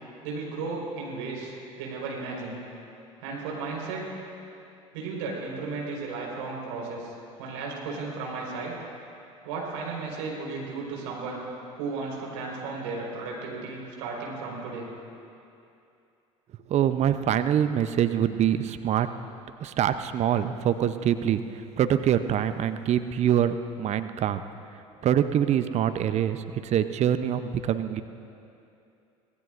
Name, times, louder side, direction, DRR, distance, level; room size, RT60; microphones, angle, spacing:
voice 1, 0.2-2.6 3.2-4.1 4.9-7.1 7.4-8.7 9.4-11.4 11.8-14.9, right 4 dB, 70° right, -2 dB, 4.6 m, -34 dB
voice 2, 16.7-19.1 19.6-24.4 25.0-28.0, right 10 dB, 40° right, 11 dB, 0.7 m, -25 dB
25.0 x 18.5 x 2.6 m, 2.7 s
hypercardioid pair, 65°, 17 cm